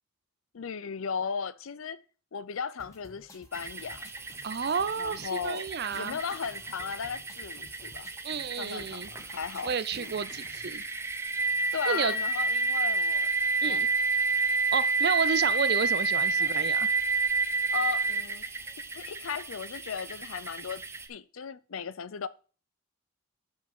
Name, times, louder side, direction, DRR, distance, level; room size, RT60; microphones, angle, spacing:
voice 1, 0.5-2.0 2.3-4.1 5.0-5.7 5.9-8.1 8.6-10.2 11.7-13.3 13.6-13.8 16.4-16.5 17.7-18.4 18.9-20.8 21.1-22.3, left 6 dB, 75° left, 0.6 m, -36 dB
sound 1, 2.8-10.8, left 1 dB, 15° left, 1.3 m, -54 dB
sound 2, 3.5-21.1, right 3 dB, 10° right, 0.7 m, -30 dB
voice 2, 4.4-6.2 8.2-9.1 9.6-10.8 11.9-12.1 13.6-13.9 14.7-16.9, right 6 dB, 50° right, 0.5 m, -31 dB
7.9 x 5.3 x 5.4 m
head